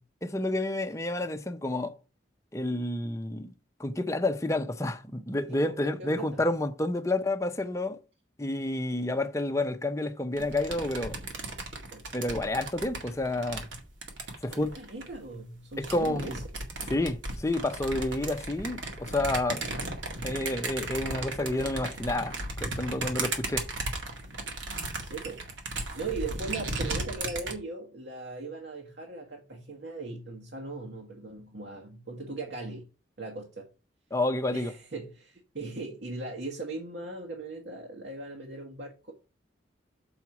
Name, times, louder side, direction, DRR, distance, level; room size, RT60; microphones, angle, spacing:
voice 1, 0.2-2.0 2.5-3.5 3.8-8.0 8.4-11.2 12.1-13.7 14.4-14.7 15.8-16.4 16.9-19.6 20.2-23.7 34.1-34.7, left 2 dB, 15° left, 0.7 m, -30 dB
voice 2, 5.5-6.4 11.9-12.1 14.5-16.4 25.0-25.4 25.9-32.9 33.2-33.7 34.5-39.1, right 3 dB, 60° right, 1.5 m, -39 dB
sound 1, 10.4-15.2 15.7-27.5, right 2 dB, 80° right, 2.0 m, -36 dB
7.1 x 4.5 x 5.9 m
head